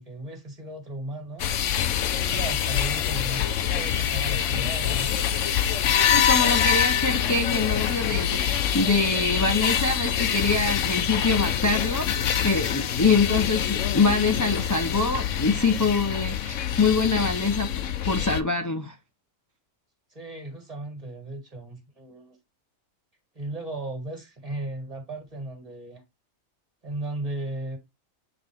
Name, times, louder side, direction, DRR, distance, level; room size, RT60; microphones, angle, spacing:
voice 1, 0.0-1.5 2.2-5.1 20.1-22.4 23.3-26.0 26.8-27.8, right 2 dB, 25° right, 2.1 m, -36 dB
sound 1, 1.4-18.4, left 9 dB, 70° left, 1.0 m, -25 dB
voice 2, 6.1-17.7 18.0-19.0, left 3 dB, 30° left, 0.3 m, -24 dB
8.6 x 3.9 x 3.4 m
omnidirectional pair, 1.4 m